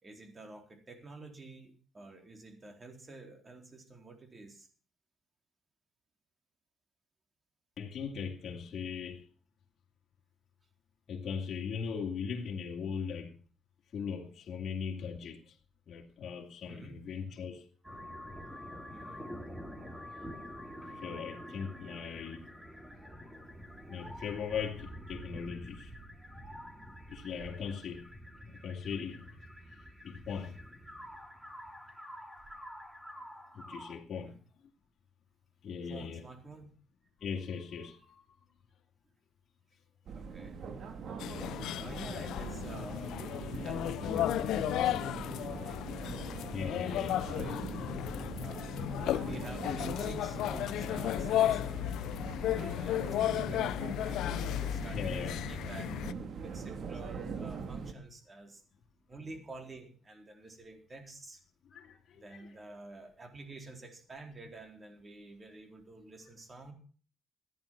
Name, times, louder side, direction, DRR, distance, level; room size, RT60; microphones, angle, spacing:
voice 1, 0.0-4.7 16.7-17.1 18.9-19.3 31.5-31.6 34.1-34.4 35.9-36.7 40.1-40.7 41.0-41.1 41.8-45.8 46.4-47.6 48.4-51.9 52.5-58.6 59.1-61.4 62.1-66.7, right 2 dB, 30° right, 4.0 m, -49 dB
voice 2, 7.8-9.3 11.1-13.3 13.9-15.6 15.9-17.7 20.1-20.2 20.8-22.4 23.9-25.9 27.1-28.1 28.5-29.4 30.0-30.6 33.5-34.4 35.6-36.2 37.2-38.2 43.4-43.5 46.4-47.2 52.4-53.0 54.9-55.4 61.6-62.5, left 6 dB, 55° left, 2.7 m, -39 dB
sound 1, 17.8-34.0, equal, 5° right, 3.2 m, -47 dB
sound 2, 40.1-57.9, right 5 dB, 60° right, 2.2 m, -42 dB
sound 3, 41.2-56.1, left 12 dB, 85° left, 0.6 m, -34 dB
15.0 x 10.0 x 5.9 m
cardioid pair, 90°, 0 cm